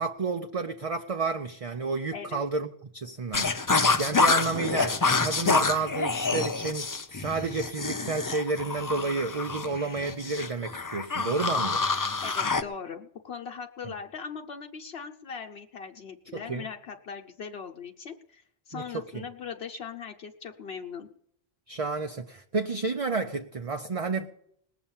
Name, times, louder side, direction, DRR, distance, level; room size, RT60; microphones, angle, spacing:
voice 1, 0.0-2.7 2.9-11.8 13.8-13.9 16.3-16.7 18.7-18.8 19.1-19.2 21.7-24.3, right 4 dB, 40° right, 0.7 m, -31 dB
sound 1, 3.3-12.6, left 4 dB, 25° left, 0.4 m, -27 dB
voice 2, 12.2-21.1, left 6 dB, 75° left, 1.1 m, -40 dB
19.5 x 7.0 x 7.2 m
omnidirectional pair, 1.0 m